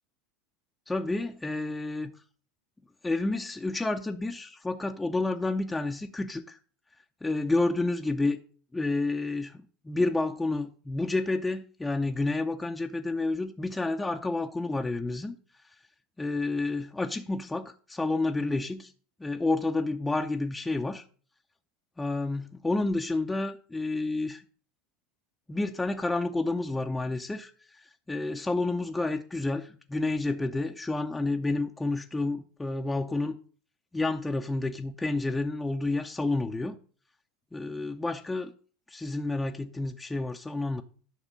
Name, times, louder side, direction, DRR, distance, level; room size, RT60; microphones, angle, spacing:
voice 1, 0.9-2.1 3.0-6.6 7.2-8.4 8.7-15.4 16.2-18.9 19.2-21.0 22.0-24.4 25.5-33.4 33.9-36.8 37.5-38.5 38.9-40.8, left 2 dB, 10° left, 0.7 m, -30 dB
10.5 x 6.2 x 5.5 m
hypercardioid pair, 85°, 0 cm